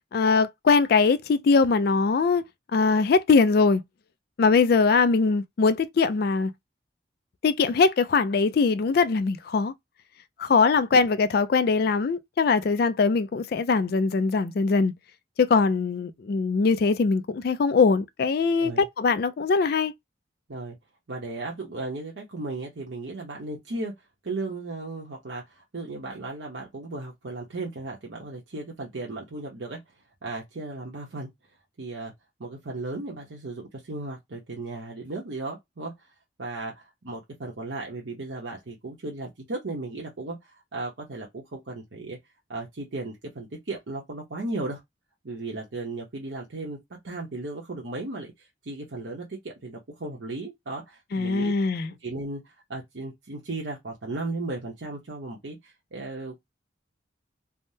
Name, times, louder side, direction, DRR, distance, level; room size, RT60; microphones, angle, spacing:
voice 1, 0.1-2.4 2.7-3.8 4.4-6.5 7.4-9.7 10.4-14.9 15.4-19.9 51.1-51.9, left 4 dB, 55° left, 0.3 m, -22 dB
voice 2, 21.1-23.9 24.2-29.8 30.2-31.3 31.8-32.1 32.4-36.1 36.4-42.2 42.5-44.8 45.2-46.8 47.0-51.5 52.0-56.4, right 2 dB, 75° right, 0.9 m, -35 dB
3.5 x 2.1 x 2.7 m
head